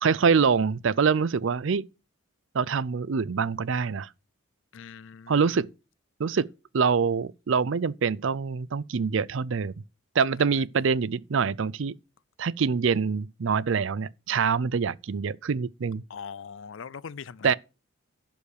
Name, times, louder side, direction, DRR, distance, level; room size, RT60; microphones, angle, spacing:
voice 1, 0.0-1.8 2.5-4.1 5.3-5.7 6.2-6.5 6.7-9.7 10.2-11.9 12.4-16.0 17.4-17.5, right 5 dB, 65° right, 0.5 m, -25 dB
voice 2, 4.7-5.7 10.4-10.6 16.1-17.5, left 6 dB, 65° left, 0.5 m, -42 dB
11.5 x 5.3 x 6.6 m
head